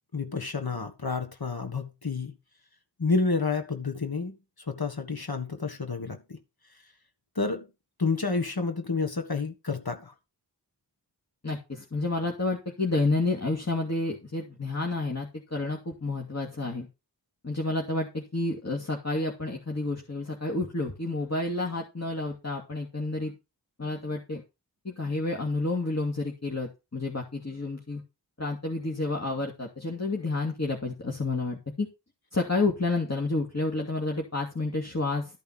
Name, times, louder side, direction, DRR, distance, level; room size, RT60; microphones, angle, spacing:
voice 1, 0.1-2.3 3.0-4.3 4.7-6.4 7.3-7.7 8.0-10.1, left 4 dB, 60° left, 1.6 m, -29 dB
voice 2, 11.4-16.9 17.4-23.3 23.8-24.4 24.8-28.0 28.4-31.9 32.3-35.4, left 2 dB, 35° left, 2.7 m, -30 dB
13.0 x 5.6 x 5.9 m
wide cardioid pair, 50°, 42 cm